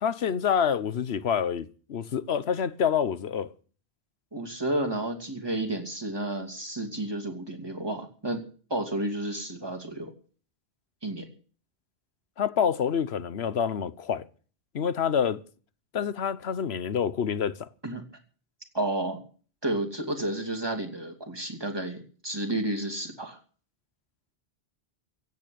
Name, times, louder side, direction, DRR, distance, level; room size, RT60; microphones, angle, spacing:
voice 1, 0.0-3.5 12.4-14.3 14.7-15.4 15.9-17.7, left 7 dB, 90° left, 1.2 m, -27 dB
voice 2, 4.3-8.4 8.7-10.1 11.0-11.3 17.8-18.0 18.7-19.2 19.6-23.4, right 1 dB, 25° right, 2.6 m, -31 dB
16.0 x 8.3 x 8.6 m
omnidirectional pair, 1.0 m